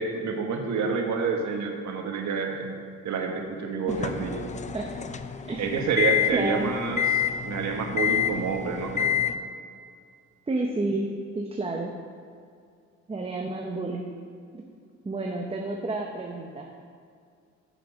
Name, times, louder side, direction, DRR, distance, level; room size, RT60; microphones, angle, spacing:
voice 1, 0.0-2.8 3.0-4.5 5.6-7.0 7.4-9.1, right 4 dB, 70° right, 3 dB, 1.3 m, -28 dB
sound 1, 3.9-9.4, left 8 dB, 25° left, 0.4 m, -28 dB
voice 2, 6.3-6.7 10.5-11.9 13.1-14.1 14.5-14.7 15.0-16.7, right 2 dB, 20° right, 1 dB, 0.8 m, -30 dB
7.4 x 6.7 x 4.9 m, 2.3 s
cardioid pair, 90°, 30 cm